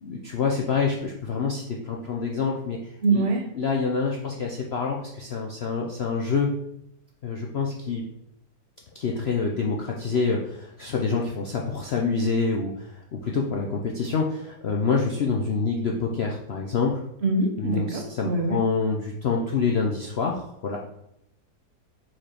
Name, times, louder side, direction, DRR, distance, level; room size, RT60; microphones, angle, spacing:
voice 1, 0.0-3.3 3.5-6.5 7.2-8.0 8.9-17.0 17.6-20.8, left 4 dB, 65° left, 0 dB, 0.6 m, -27 dB
voice 2, 3.0-3.5 17.2-18.6, right 3 dB, 45° right, 3 dB, 1.0 m, -24 dB
5.0 x 4.5 x 4.3 m, 0.79 s
omnidirectional pair, 1.8 m